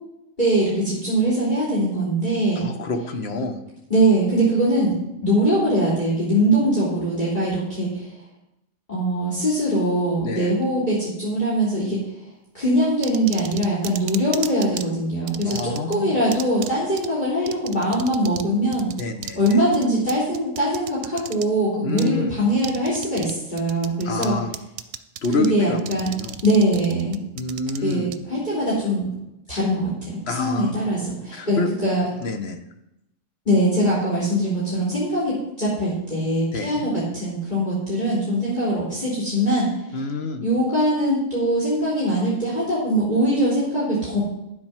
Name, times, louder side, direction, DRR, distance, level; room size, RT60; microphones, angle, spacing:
voice 1, 0.4-2.7 3.9-8.1 8.9-12.0 12.5-18.9 19.3-24.3 25.4-26.1 26.4-27.2 27.8-29.1 29.5-32.0 33.4-39.7 40.4-44.2, right 1 dB, 35° left, -9 dB, 3.4 m, -22 dB
voice 2, 2.6-3.6 10.2-10.5 15.4-16.2 19.0-19.6 21.8-22.3 24.0-24.5 25.2-26.4 27.3-28.1 30.3-30.9 31.3-31.7 32.2-32.6 36.5-36.9 39.9-40.5, left 3 dB, 55° left, 6 dB, 1.3 m, -28 dB
sound 1, 13.0-14.8 15.3-16.0 16.3-16.7 17.0-17.1 17.5-18.5 18.7-21.4 22.0-22.1 22.6-23.3 23.6-24.3 24.5-25.5 25.8-28.2, right 10 dB, 70° right, 1.0 m, -33 dB
10.0 x 7.7 x 5.8 m, 0.87 s
omnidirectional pair, 1.4 m